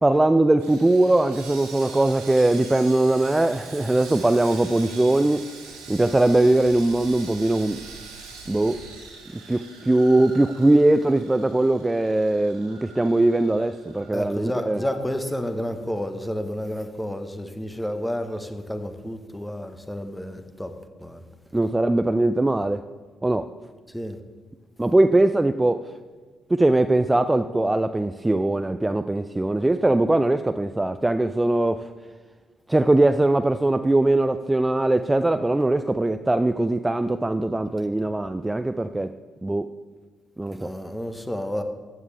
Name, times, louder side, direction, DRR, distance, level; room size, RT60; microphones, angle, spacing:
voice 1, 0.0-5.5 5.9-7.8 8.5-8.8 9.3-14.8 21.5-22.8 23.2-23.5 24.8-25.9 26.5-31.9 32.7-39.1 39.4-39.7 40.4-40.7, right 2 dB, 15° right, 0.4 m, -21 dB
Sawing, 0.6-14.9 15.1-15.3 15.8-15.9, right 4 dB, 75° right, 2.0 m, -43 dB
sound 1, 13.4-18.5, left 1 dB, 40° left, 3.3 m, -52 dB
voice 2, 14.1-20.7 21.0-21.2 23.9-24.2 40.5-41.6, equal, 10° left, 1.2 m, -30 dB
15.0 x 9.4 x 3.4 m
figure-of-eight pair, 40°, 0 cm